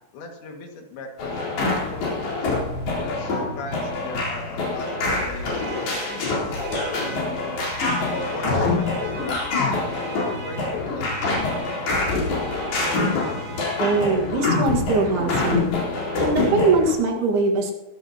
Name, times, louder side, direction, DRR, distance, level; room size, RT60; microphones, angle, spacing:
voice 1, 0.1-1.4 1.7-2.5 3.0-6.4 7.0-7.7 8.1-9.9 10.4-11.2 11.6-12.2, left 3 dB, 90° left, 2 dB, 4.3 m, -38 dB
sound 1, 1.2-16.9, left 3 dB, 65° left, 5.9 m, -25 dB
Alarm, 5.2-14.5, right 3 dB, 40° right, 4.3 m, -40 dB
voice 2, 13.8-15.7 16.2-17.7, right 3 dB, 70° right, 1 dB, 3.6 m, -21 dB
22.0 x 14.0 x 2.9 m, 1.1 s
omnidirectional pair, 4.9 m